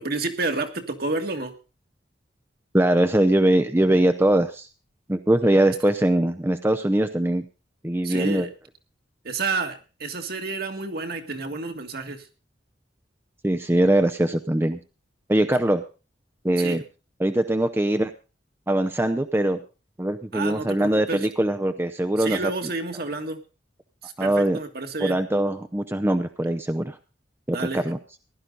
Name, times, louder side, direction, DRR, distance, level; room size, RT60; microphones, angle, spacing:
voice 1, 0.0-1.5 8.0-8.5 9.2-12.3 16.6-16.8 20.3-21.3 22.2-23.4 24.0-25.2 27.5-27.9, right 3 dB, 60° right, 5 dB, 1.9 m, -30 dB
voice 2, 2.7-4.7 5.1-7.4 7.8-8.5 13.4-14.8 15.3-15.8 16.4-16.8 17.2-18.1 18.7-19.6 20.0-22.5 24.2-24.6 25.0-27.0 27.5-28.0, right 1 dB, 15° right, 8 dB, 0.7 m, -22 dB
16.0 x 11.5 x 3.9 m, 0.33 s
head